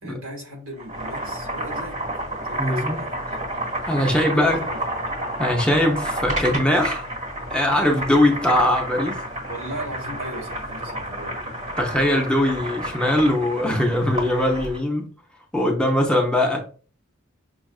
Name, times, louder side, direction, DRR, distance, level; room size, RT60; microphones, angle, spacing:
voice 1, 0.0-2.0 2.3-3.5 3.9-4.8 9.5-11.4, right 1 dB, 80° right, 1.8 m, -37 dB
Boiling, 0.7-14.8, right 1 dB, 35° right, 1.7 m, -30 dB
voice 2, 2.6-3.0 3.9-4.6 5.4-7.1 7.5-9.2 11.8-15.1 15.5-16.6, left 1 dB, 5° left, 0.6 m, -21 dB
6.1 x 2.3 x 2.3 m
head